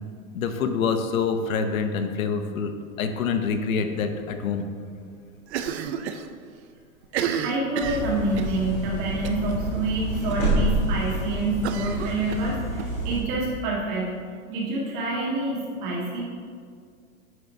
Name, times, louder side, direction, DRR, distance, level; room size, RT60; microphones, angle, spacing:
voice 1, 0.3-2.7 3.0-4.7, left 5 dB, 70° left, 7 dB, 0.9 m, -26 dB
Cough, 5.5-6.3 6.5-6.6 7.0-8.6 9.2-9.5 9.9-10.0 10.3-10.4 11.6-12.9, right 8 dB, 50° right, 0.5 m, -31 dB
voice 2, 7.3-14.1 14.5-16.2, right 2 dB, 35° right, -4 dB, 1.8 m, -27 dB
sound 1, 7.8-13.2, right 1 dB, 5° left, 0.4 m, -28 dB
9.6 x 3.8 x 4.5 m, 2.1 s
supercardioid pair, 170°, 43 cm